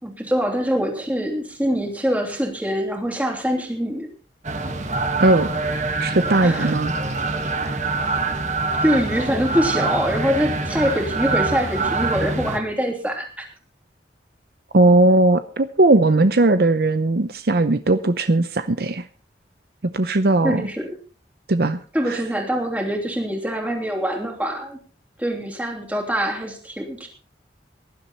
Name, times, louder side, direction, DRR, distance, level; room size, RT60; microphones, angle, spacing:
voice 1, 0.0-4.1 6.4-6.8 7.6-7.9 8.8-13.4 20.4-21.0 21.9-24.8 25.2-27.1, equal, 10° right, 2 dB, 3.1 m, -24 dB
sound 1, 4.4-12.6, right 3 dB, 40° right, 1.6 m, -25 dB
voice 2, 5.2-5.6 6.0-6.9 14.7-19.0 19.8-20.6 21.5-21.8 22.1-22.2, right 2 dB, 55° right, 11 dB, 0.7 m, -18 dB
18.5 x 11.5 x 4.3 m, 0.38 s
head